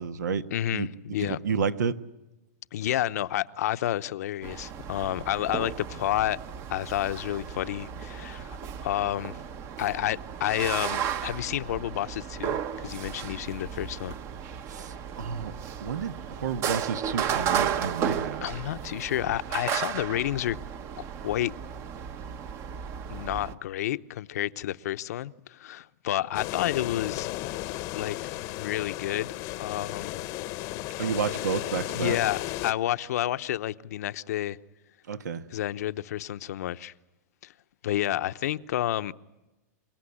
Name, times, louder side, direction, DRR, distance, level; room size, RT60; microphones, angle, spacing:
voice 1, 0.0-0.5 0.7-0.9 1.2-2.0 14.7-15.5 15.8-18.5 31.0-32.2 35.1-35.4, right 6 dB, 90° right, 1.4 m, -30 dB
voice 2, 0.5-1.4 2.7-6.4 6.7-9.4 9.8-14.1 18.4-20.6 21.2-21.5 23.1-27.3 27.9-28.2 28.5-29.3 29.6-30.2 31.9-34.6 35.5-36.9 37.4-37.5 37.8-39.1, left 13 dB, 65° left, 0.8 m, -30 dB
sound 1, 4.4-23.5, right 8 dB, 30° right, 0.9 m, -34 dB
sound 2, 26.3-32.7, left 17 dB, 35° left, 0.8 m, -34 dB
28.5 x 17.5 x 10.0 m
hypercardioid pair, 145°, 9 cm